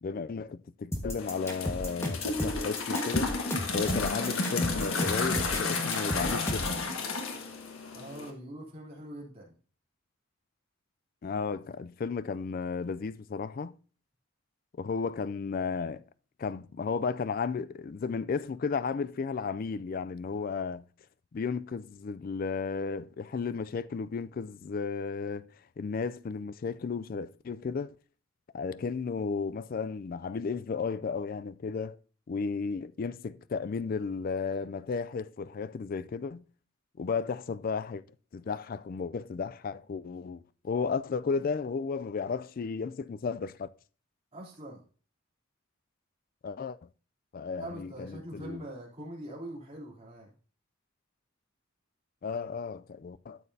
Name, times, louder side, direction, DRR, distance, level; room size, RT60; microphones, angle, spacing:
voice 1, 0.0-3.3 3.7-6.7 11.2-13.7 14.8-16.0 16.4-20.8 21.3-25.5 25.8-27.9 28.5-32.0 32.3-36.4 37.0-38.0 38.3-43.7 46.4-46.8 47.3-48.6 52.2-53.4, left 5 dB, 45° left, 0.3 m, -34 dB
sound 1, 0.9-6.8, left 1 dB, 15° left, 1.3 m, -34 dB
sound 2, 1.2-8.3, left 3 dB, 85° left, 1.5 m, -32 dB
voice 2, 7.9-9.5 44.3-44.8 47.5-50.3, right 1 dB, 30° right, 3.2 m, -43 dB
12.5 x 7.0 x 2.7 m
head